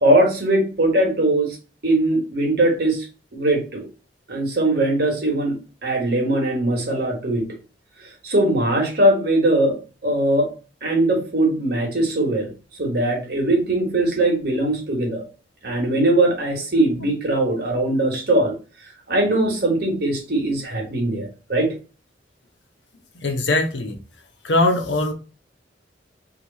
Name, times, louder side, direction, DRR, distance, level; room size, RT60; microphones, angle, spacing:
voice 1, 0.0-1.6 1.8-3.1 3.3-3.9 4.3-5.6 5.8-7.5 8.2-9.8 10.0-10.5 10.8-12.5 12.8-15.2 15.6-18.5 19.1-21.7, right 1 dB, 55° right, 0 dB, 1.4 m, -20 dB
voice 2, 23.2-24.0 24.4-25.1, left 2 dB, 75° left, 4 dB, 0.9 m, -20 dB
3.1 x 2.9 x 4.0 m, 0.35 s
head